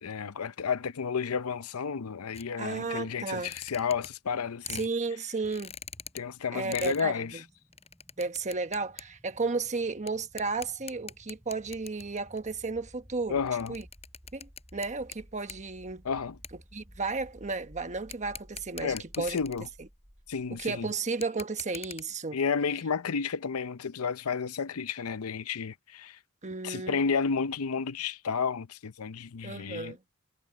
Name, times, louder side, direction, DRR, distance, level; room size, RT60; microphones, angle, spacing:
voice 1, 0.0-4.9 6.1-7.4 13.3-13.8 16.0-16.4 18.8-19.7 20.3-20.9 22.3-26.2 26.6-29.9, left 6 dB, 85° left, 0.6 m, -31 dB
sound 1, 2.3-2.5 3.3-4.3 4.7-4.9 5.4-6.2 6.7-7.0 7.7-9.0 9.3-9.4 10.1-10.2 10.4-12.4 13.1-15.2 15.4-15.6 16.4-16.5 18.1-19.8 21.1-22.0, left 7 dB, 30° left, 7.2 m, -43 dB
voice 2, 2.6-3.5 4.7-5.7 6.5-7.4 8.2-13.4 13.7-13.8 14.3-16.0 16.7-19.4 19.8-19.9 20.5-22.4 26.4-27.1 29.4-30.0, right 4 dB, 35° right, 1.2 m, -33 dB
sound 2, 5.1-20.9, equal, 10° right, 7.5 m, -56 dB
head